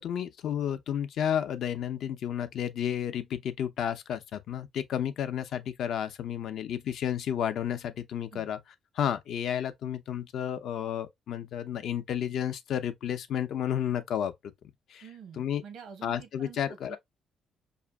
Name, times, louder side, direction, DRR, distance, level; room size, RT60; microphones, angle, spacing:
voice 1, 0.0-8.6 9.0-14.3 14.9-15.0 15.4-15.6 16.0-17.0, left 9 dB, 70° left, 0.5 m, -31 dB
voice 2, 15.0-17.0, right 7 dB, 80° right, 0.9 m, -48 dB
4.9 x 2.5 x 2.2 m
cardioid pair, 90°, 0 cm